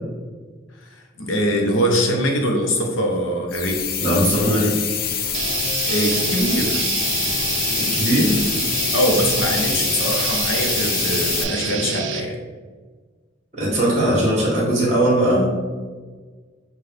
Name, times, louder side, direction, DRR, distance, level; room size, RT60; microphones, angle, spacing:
voice 1, 0.8-3.9 5.9-6.8 8.9-12.4, equal, 85° left, 1 dB, 0.9 m, -22 dB
sound 1, 3.5-11.4, left 8 dB, 50° left, 0.4 m, -25 dB
voice 2, 4.0-4.8 7.8-8.4 13.6-15.5, right 1 dB, 35° right, -6 dB, 1.4 m, -19 dB
sound 2, 5.3-12.2, right 6 dB, 75° right, 0.4 m, -26 dB
5.8 x 2.4 x 3.4 m, 1.5 s
head